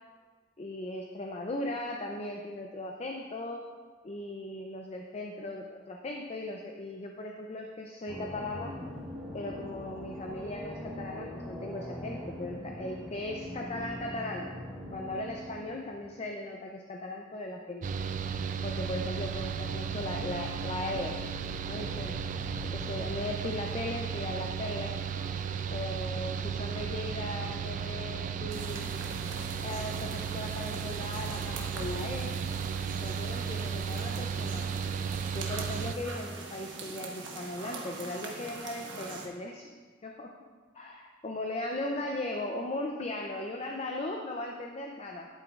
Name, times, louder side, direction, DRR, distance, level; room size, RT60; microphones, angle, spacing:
voice 1, 0.6-3.6 4.0-8.8 9.3-14.5 14.9-17.9 18.6-21.2 21.7-22.2 22.7-24.9 25.7-28.9 29.6-32.4 32.9-34.7 35.3-39.7 40.0-40.3 40.7-45.3, left 1 dB, 35° left, 2 dB, 0.5 m, -38 dB
sound 1, 8.1-15.9 17.8-23.1, left 1 dB, 5° right, 1.8 m, -42 dB
Mechanical fan, 17.8-35.9, right 7 dB, 45° right, 0.4 m, -35 dB
sound 2, 28.5-39.3, right 3 dB, 70° right, 1.1 m, -43 dB
11.5 x 7.8 x 2.5 m, 1.5 s
head